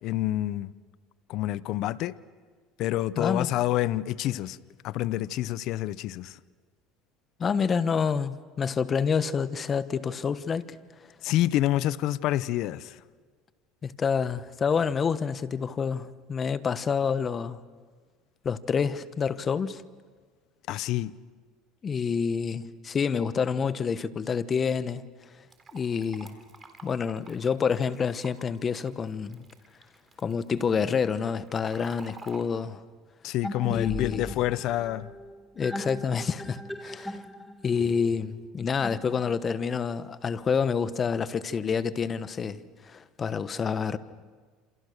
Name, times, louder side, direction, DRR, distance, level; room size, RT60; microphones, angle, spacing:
voice 1, 0.0-0.7 1.3-2.2 2.8-4.6 4.8-6.4 11.2-13.0 20.7-21.1 33.2-35.1, left 14 dB, 60° left, 0.7 m, -28 dB
voice 2, 3.2-3.5 7.4-10.7 13.8-17.6 18.4-19.8 21.8-25.0 25.7-26.4 26.8-29.4 30.2-32.8 33.7-34.3 35.6-37.2 37.6-42.6 42.8-44.0, left 6 dB, 35° left, 1.2 m, -28 dB
Fill (with liquid), 25.5-32.4, right 4 dB, 25° right, 3.9 m, -51 dB
sound 1, 33.4-39.6, equal, 5° left, 2.1 m, -39 dB
28.0 x 27.5 x 6.6 m
supercardioid pair, 95°, 0 cm